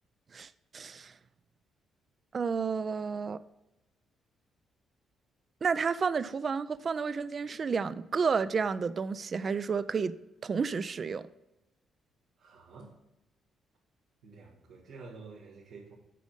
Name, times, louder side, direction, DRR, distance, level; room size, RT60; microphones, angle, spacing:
voice 1, 0.3-1.1 2.3-3.4 5.6-10.1 10.4-11.3, right 5 dB, 40° right, 0.4 m, -31 dB
voice 2, 12.4-12.9 14.2-15.9, right 4 dB, 90° right, 1.6 m, -49 dB
8.4 x 5.1 x 5.5 m
cardioid pair, 90°, 0 cm